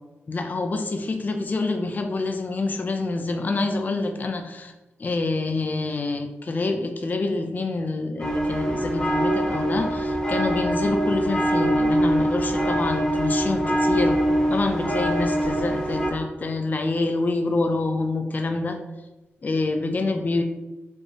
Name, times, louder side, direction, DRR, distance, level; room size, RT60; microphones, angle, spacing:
voice 1, 0.3-4.7 5.0-14.2 14.5-18.8 19.4-20.4, left 3 dB, 40° left, 5 dB, 0.4 m, -26 dB
sound 1, 8.2-16.1, right 1 dB, 15° left, 0.9 m, -23 dB
4.3 x 3.0 x 3.3 m, 1.1 s
wide cardioid pair, 100°, 5 cm